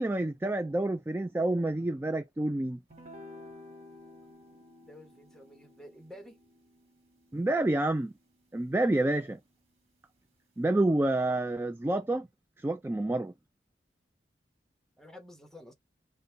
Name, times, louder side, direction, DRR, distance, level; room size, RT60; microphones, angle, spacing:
voice 1, 0.0-2.8 7.3-8.1 8.5-9.4 10.6-12.3 12.6-13.3, right 2 dB, 15° right, 0.3 m, -28 dB
sound 1, 2.9-9.4, left 2 dB, 35° right, 1.7 m, -53 dB
voice 2, 4.9-6.4 15.0-15.7, left 1 dB, 5° left, 1.0 m, -50 dB
5.3 x 2.2 x 3.9 m
head